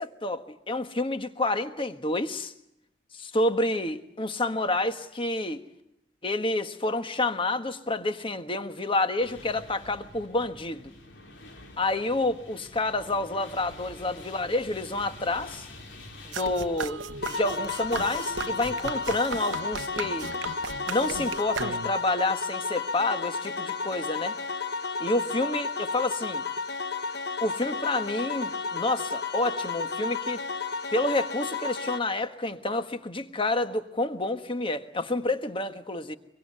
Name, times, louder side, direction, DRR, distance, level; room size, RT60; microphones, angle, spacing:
voice 1, 0.0-2.5 3.1-5.6 6.2-10.9 11.8-15.7 16.2-20.3 20.9-24.4 25.0-26.5 27.4-30.4 30.9-36.2, left 2 dB, 30° left, 1.4 m, -29 dB
sound 1, 9.2-19.1, left 2 dB, 75° left, 4.0 m, -48 dB
sound 2, 16.3-22.1, right 4 dB, 85° right, 1.0 m, -36 dB
sound 3, 17.2-32.0, left 4 dB, 60° left, 1.1 m, -32 dB
24.5 x 23.5 x 9.7 m
head